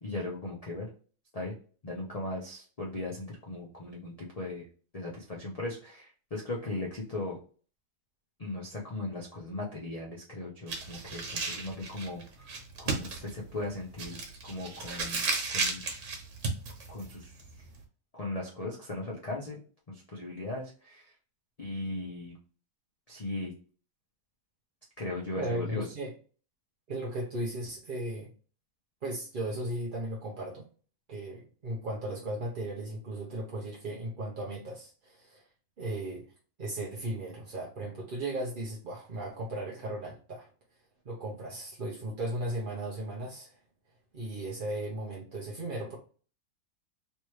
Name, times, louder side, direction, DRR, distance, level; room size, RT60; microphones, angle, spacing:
voice 1, 0.0-0.9 1.3-1.5 1.8-4.7 4.9-7.4 8.4-15.2 15.5-15.8 16.9-17.4 18.1-19.6 19.9-21.1 21.6-22.3 23.1-23.5 25.0-25.8, left 2 dB, 40° left, -3 dB, 0.5 m, -38 dB
sound 1, 10.7-17.8, right 4 dB, 80° right, 1.6 m, -34 dB
voice 2, 25.4-26.1 26.9-28.3 29.0-30.6 31.1-35.4 35.8-36.2 36.6-40.5 41.0-43.6 44.1-46.0, right 1 dB, 45° right, -4 dB, 0.7 m, -36 dB
3.3 x 3.1 x 3.0 m, 0.41 s
omnidirectional pair, 1.8 m